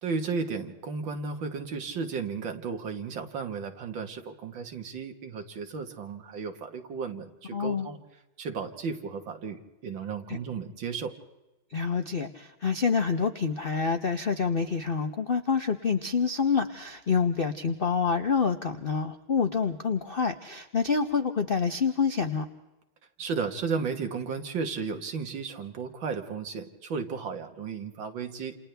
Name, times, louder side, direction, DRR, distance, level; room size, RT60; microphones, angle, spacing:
voice 1, 0.0-8.0 8.4-11.1 23.2-28.6, right 5 dB, 70° right, 5 dB, 2.3 m, -34 dB
voice 2, 7.5-7.9 10.3-10.4 11.7-22.5, left 5 dB, 60° left, 8 dB, 0.5 m, -27 dB
28.5 x 28.0 x 3.4 m, 1.0 s
omnidirectional pair, 2.2 m